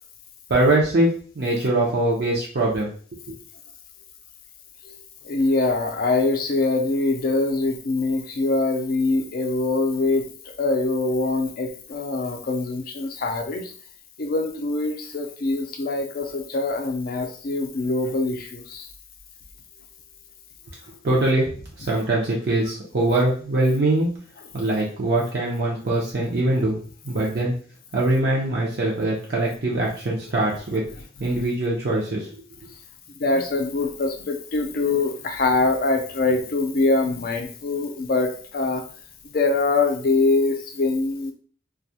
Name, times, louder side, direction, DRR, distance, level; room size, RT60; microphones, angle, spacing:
voice 1, 0.5-1.1 1.4-2.9 3.3-3.4 21.0-21.5 21.8-24.1 24.5-26.8 27.1-27.5 27.9-30.8 31.2-32.3, right 2 dB, 55° right, -4 dB, 0.5 m, -22 dB
voice 2, 5.2-10.3 10.6-13.7 14.2-18.9 31.3-31.4 33.2-38.8 39.3-41.3, left 3 dB, 50° left, 5 dB, 0.4 m, -23 dB
2.3 x 2.1 x 2.7 m, 0.44 s
head